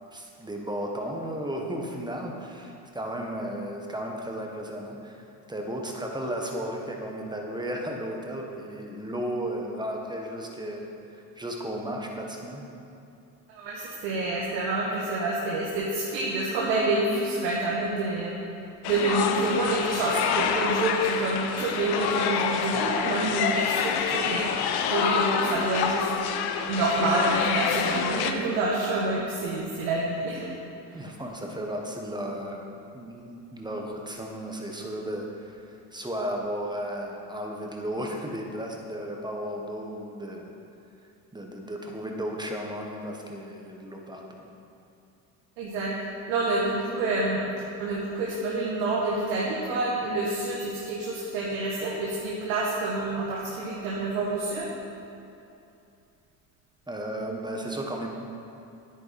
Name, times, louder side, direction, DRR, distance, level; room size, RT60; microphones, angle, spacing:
voice 1, 0.1-12.7 30.9-40.5 41.3-44.5 56.9-58.1, equal, 10° right, 0 dB, 1.5 m, -34 dB
voice 2, 13.5-18.4 18.8-24.6 24.9-26.1 26.7-30.5 30.9-31.0 45.6-45.9 46.3-47.4 47.8-54.7, right 2 dB, 85° right, -4 dB, 1.5 m, -28 dB
sound 1, 18.8-28.3, left 7 dB, 60° left, 0.9 m, -27 dB
9.6 x 9.2 x 4.3 m, 2.7 s
supercardioid pair, 90°, 43 cm